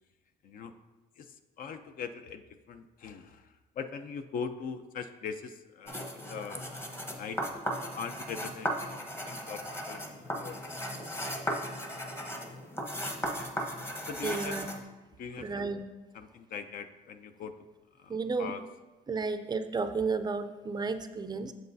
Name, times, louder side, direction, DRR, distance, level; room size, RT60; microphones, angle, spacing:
voice 1, 0.4-0.8 1.2-6.7 7.1-7.6 8.0-10.6 14.0-14.6 15.1-15.7 16.1-17.6 17.9-18.6, left 6 dB, 55° left, 9 dB, 0.5 m, -41 dB
sound 1, 5.9-14.8, equal, 15° left, 0.9 m, -37 dB
voice 2, 14.2-14.7 15.4-15.8 18.1-18.5 19.1-21.5, right 4 dB, 25° right, 9 dB, 0.4 m, -32 dB
7.9 x 7.4 x 2.7 m, 1.2 s
cardioid pair, 110°, 17 cm